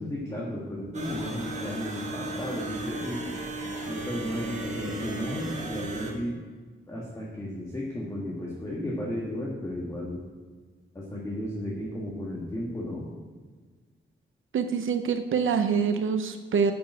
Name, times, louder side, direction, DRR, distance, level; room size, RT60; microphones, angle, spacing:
voice 1, 0.0-3.2 3.9-6.4 6.9-10.2 10.9-13.1, left 1 dB, 15° left, -5 dB, 1.6 m, -34 dB
sound 1, 0.9-6.1, right 2 dB, 35° right, 1.5 m, -35 dB
voice 2, 14.5-16.7, right 6 dB, 85° right, 7 dB, 0.7 m, -25 dB
7.9 x 6.8 x 7.6 m, 1.5 s
wide cardioid pair, 170°, 20 cm